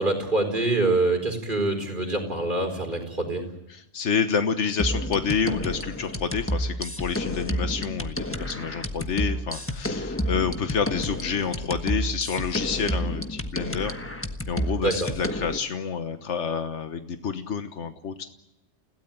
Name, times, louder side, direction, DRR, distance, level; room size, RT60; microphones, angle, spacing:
voice 1, 0.0-3.5 14.8-15.1, right 2 dB, 45° right, 4 dB, 4.9 m, -25 dB
voice 2, 3.7-13.9 14.5-18.2, left 6 dB, 85° left, 8 dB, 1.5 m, -28 dB
sound 1, 4.8-15.6, equal, 10° left, 1.3 m, -30 dB
30.0 x 17.0 x 9.0 m, 0.83 s
omnidirectional pair, 1.2 m